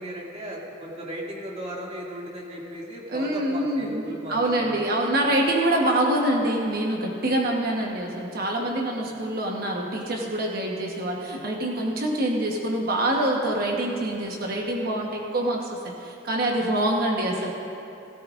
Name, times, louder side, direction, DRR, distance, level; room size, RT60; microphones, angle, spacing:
voice 1, 0.0-4.9 9.0-9.2, equal, 35° right, -4 dB, 2.3 m, -36 dB
voice 2, 3.1-17.5, right 1 dB, 55° right, -1 dB, 1.2 m, -25 dB
17.0 x 16.5 x 2.5 m, 2.9 s
head